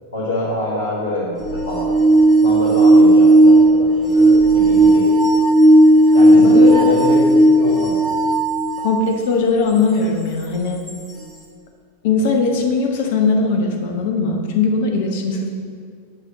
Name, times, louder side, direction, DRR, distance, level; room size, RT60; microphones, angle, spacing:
voice 1, 0.1-1.9 2.4-5.0 6.1-7.2 7.5-8.0, left 1 dB, 65° left, -11 dB, 1.6 m, -25 dB
sound 1, 1.4-9.1 9.8-9.9 10.9-11.0, right 1 dB, 10° left, 1.6 m, -13 dB
voice 2, 6.3-6.8 8.8-10.8 12.0-15.5, left 4 dB, 50° left, 3 dB, 0.8 m, -19 dB
7.8 x 2.9 x 6.0 m, 2.1 s
figure-of-eight pair, 90°, 0 cm